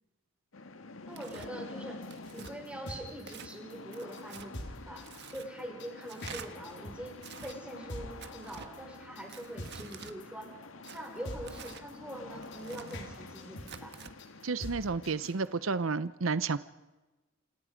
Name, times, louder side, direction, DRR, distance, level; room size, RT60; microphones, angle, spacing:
sound 1, 0.5-16.0, left 3 dB, 90° left, 1.8 m, -48 dB
voice 1, 1.1-2.0 2.3-5.1 5.3-10.5 10.9-13.9, right 1 dB, 5° right, 1 dB, 5.9 m, -44 dB
Tearing, 1.1-1.5 2.1-2.5 3.2-3.5 3.9-4.5 5.0-5.5 6.1-6.5 7.2-7.6 8.2-8.7 9.3-10.1 10.9-11.8 12.4-13.0 13.6-14.1, right 6 dB, 60° right, 1.4 m, -48 dB
sound 2, 2.0-15.5, left 1 dB, 60° left, 4.2 m, -45 dB
voice 2, 14.4-16.6, right 4 dB, 80° right, 15 dB, 0.7 m, -31 dB
28.5 x 27.0 x 5.2 m, 1.1 s
head